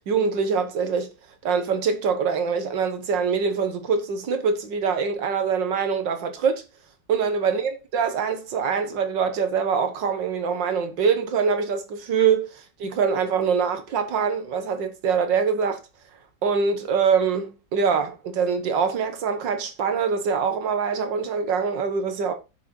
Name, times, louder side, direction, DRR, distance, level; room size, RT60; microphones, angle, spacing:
voice 1, 0.1-1.1 1.4-6.6 7.1-15.8 16.4-22.3, right 6 dB, 85° right, 2.0 m, -24 dB
7.6 x 6.5 x 4.2 m
omnidirectional pair, 1.9 m